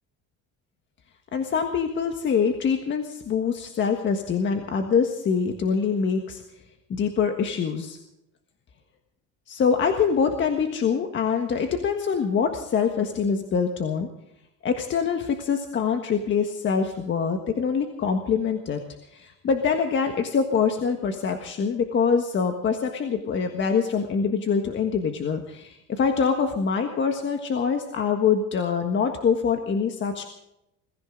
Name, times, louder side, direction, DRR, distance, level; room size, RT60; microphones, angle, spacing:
voice 1, 1.3-6.4 6.9-8.0 9.5-14.1 14.6-18.8 19.1-30.3, left 6 dB, 35° left, 5 dB, 1.5 m, -24 dB
22.5 x 14.5 x 3.8 m, 0.86 s
cardioid pair, 140°, 33 cm